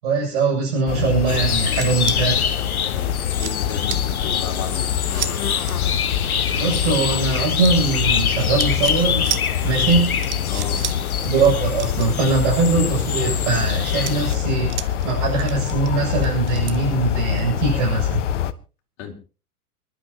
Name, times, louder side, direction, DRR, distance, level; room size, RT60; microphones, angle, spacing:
voice 1, 0.0-2.4 6.5-9.3 9.6-10.2 11.2-18.2, right 4 dB, 50° right, 7.7 m, -21 dB
sound 1, 0.9-18.5, left 10 dB, 50° left, 1.1 m, -25 dB
sound 2, 1.3-14.4, left 7 dB, 70° left, 1.3 m, -26 dB
sound 3, 1.7-2.2 2.8-2.9 3.3-3.6 3.9-4.0 5.1-5.3 5.6-5.7 7.6-8.3 8.6-9.0 9.2-9.4 9.9-10.0 10.2-11.0 11.2-11.5 11.8-12.8 13.2-13.5 14.0-15.1 15.4-16.8, right 14 dB, 25° right, 0.9 m, -31 dB
voice 2, 2.9-5.4 10.5-10.9 19.0-19.2, left 7 dB, 35° left, 3.4 m, -34 dB
29.5 x 11.5 x 2.9 m
figure-of-eight pair, 100°, 45 cm